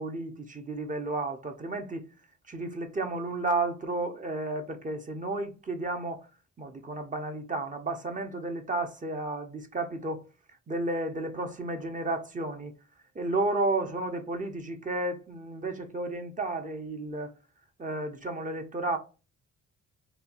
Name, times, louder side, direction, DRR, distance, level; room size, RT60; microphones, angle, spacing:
voice 1, 0.0-2.1 2.5-6.3 6.6-10.2 10.7-12.7 13.1-17.3 17.8-19.0, right 2 dB, 25° right, 0.8 m, -32 dB
4.3 x 2.3 x 2.6 m
cardioid pair, 90°, 30 cm